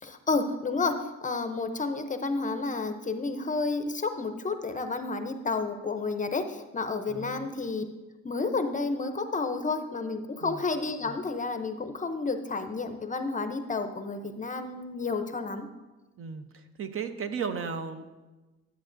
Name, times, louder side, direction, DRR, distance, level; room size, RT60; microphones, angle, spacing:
voice 1, 0.0-7.8 8.2-15.7, left 3 dB, 25° left, 8 dB, 0.6 m, -31 dB
voice 2, 7.1-7.5 10.4-10.6 16.2-16.5 16.8-18.1, right 6 dB, 45° right, 8 dB, 0.7 m, -34 dB
12.0 x 7.9 x 2.6 m, 1.2 s
cardioid pair, 90°, 30 cm